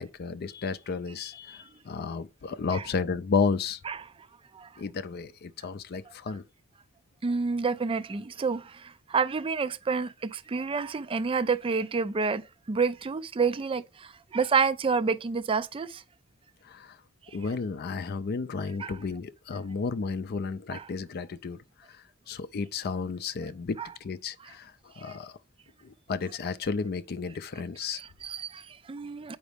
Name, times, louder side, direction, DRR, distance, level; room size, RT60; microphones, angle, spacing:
voice 1, 0.0-3.8 4.8-6.4 16.6-17.0 17.3-21.6 21.9-25.4 25.8-28.0, left 5 dB, 50° left, 0.4 m, -32 dB
voice 2, 7.2-16.0 18.8-18.9 20.7-20.9 23.8-23.9 25.1-25.2 27.9-29.4, right 5 dB, 25° right, 0.4 m, -29 dB
7.9 x 5.2 x 3.4 m
head